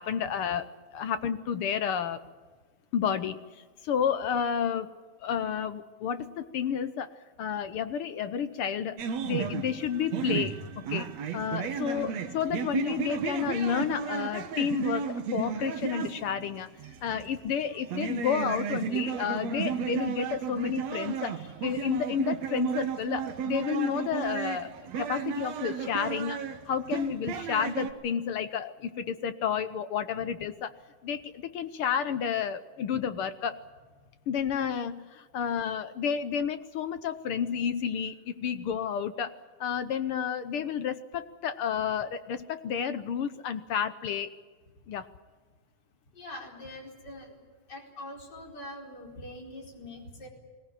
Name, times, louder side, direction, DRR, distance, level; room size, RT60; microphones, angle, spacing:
voice 1, 0.0-2.2 2.9-4.9 5.2-16.7 17.0-26.4 26.7-30.7 31.0-33.6 34.3-39.3 39.6-44.3 44.9-45.1, left 8 dB, 70° left, 11 dB, 1.4 m, -31 dB
sound 1, 9.0-27.9, right 7 dB, 65° right, 2.6 m, -33 dB
voice 2, 46.1-47.4 47.7-50.3, left 1 dB, 35° left, 0 dB, 5.0 m, -43 dB
21.5 x 18.0 x 9.9 m, 1.4 s
omnidirectional pair, 3.3 m